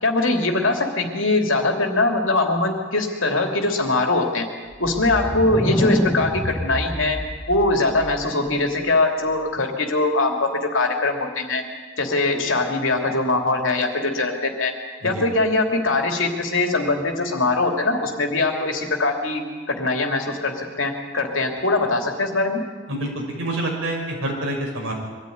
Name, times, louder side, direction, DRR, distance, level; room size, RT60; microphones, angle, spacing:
voice 1, 0.0-4.5 4.8-7.2 7.5-11.6 12.0-14.7 15.0-22.6, left 2 dB, 70° left, 2 dB, 2.9 m, -22 dB
sound 1, 4.7-8.5, equal, 10° left, 1.5 m, -27 dB
voice 2, 22.9-24.9, right 1 dB, 75° right, 0 dB, 5.7 m, -27 dB
23.0 x 13.5 x 9.5 m, 1.5 s
head